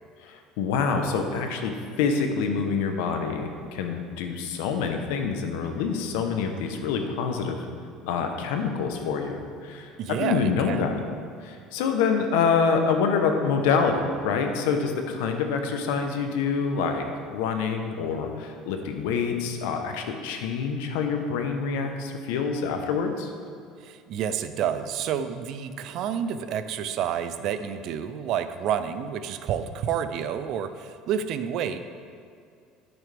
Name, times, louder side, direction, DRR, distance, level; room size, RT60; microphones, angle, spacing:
voice 1, 0.2-7.6 8.0-11.0 11.4-17.0 17.3-23.3, left 5 dB, 85° left, 5 dB, 1.0 m, -26 dB
voice 2, 10.0-10.9 23.8-31.8, right 8 dB, 55° right, 11 dB, 0.5 m, -29 dB
12.5 x 6.2 x 3.5 m, 2.4 s
cardioid pair, 125°, 0 cm